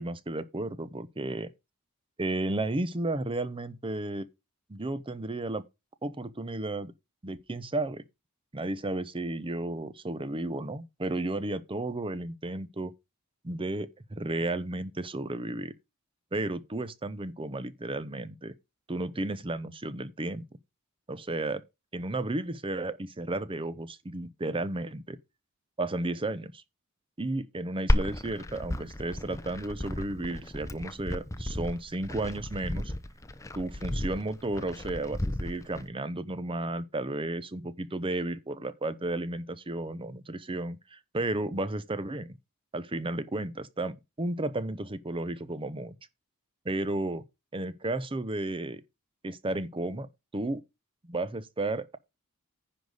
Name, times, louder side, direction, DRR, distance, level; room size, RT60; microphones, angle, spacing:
voice 1, 0.0-1.5 2.2-4.3 4.7-5.6 6.0-6.9 7.2-8.0 8.5-12.9 13.4-15.7 16.3-18.5 18.9-20.4 21.1-21.6 21.9-25.2 25.8-26.6 27.2-32.9 33.6-42.3 42.7-46.0 46.6-47.2 47.5-48.8 49.2-50.1 50.3-50.6 51.0-52.0, right 2 dB, 25° right, 0.7 m, -33 dB
Glass, 27.9-35.9, left 1 dB, 15° left, 0.6 m, -33 dB
10.0 x 3.9 x 6.6 m
head